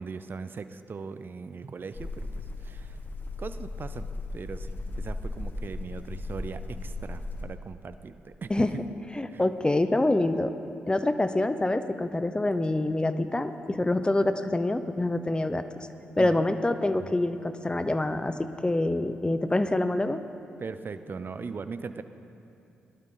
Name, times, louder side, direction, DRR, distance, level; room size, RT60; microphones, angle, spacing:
voice 1, 0.0-2.3 2.6-3.0 3.4-4.1 4.3-8.7 9.3-9.4 16.2-16.5 17.0-17.1 20.6-22.0, right 5 dB, 45° right, 11 dB, 0.6 m, -39 dB
sound 1, 1.9-7.5, left 2 dB, 40° left, 1.4 m, -36 dB
voice 2, 9.1-10.5 10.9-15.6 16.2-20.2, left 2 dB, 20° left, 10 dB, 0.8 m, -26 dB
18.5 x 12.0 x 3.8 m, 2.7 s
hypercardioid pair, 40°, 5 cm